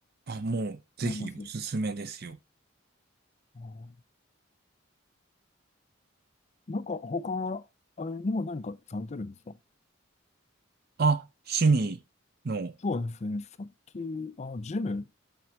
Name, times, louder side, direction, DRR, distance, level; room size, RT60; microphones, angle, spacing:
voice 1, 0.3-2.4 11.0-12.0 12.4-12.7, right 4 dB, 50° right, 0.6 m, -28 dB
voice 2, 1.0-1.5 3.6-3.9 6.7-7.6 8.0-9.5 12.8-15.1, left 3 dB, 35° left, 0.4 m, -34 dB
6.2 x 6.0 x 4.4 m
head